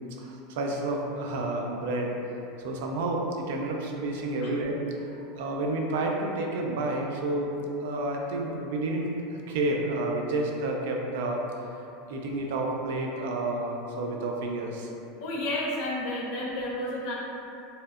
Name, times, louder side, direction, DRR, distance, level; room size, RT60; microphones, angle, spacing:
voice 1, 0.2-2.1 2.6-11.7 12.1-14.9, right 2 dB, 75° right, 0 dB, 0.3 m, -30 dB
voice 2, 15.2-17.1, left 1 dB, 55° left, -4 dB, 0.5 m, -31 dB
2.7 x 2.1 x 2.3 m, 2.8 s
supercardioid pair, 155°, 0 cm